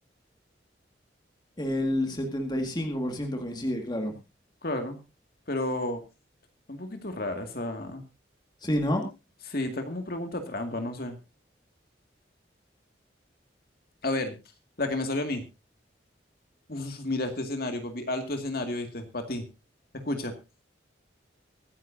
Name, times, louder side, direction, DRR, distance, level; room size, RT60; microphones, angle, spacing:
voice 1, 1.6-4.1 8.6-9.1, left 1 dB, 25° left, 3 dB, 1.9 m, -29 dB
voice 2, 4.6-5.0 5.5-6.0 6.7-8.0 9.5-11.2 14.0-14.3 14.8-15.4 16.7-19.4 20.0-20.3, left 2 dB, 55° left, 6 dB, 2.2 m, -31 dB
24.0 x 9.8 x 2.7 m, 0.27 s
head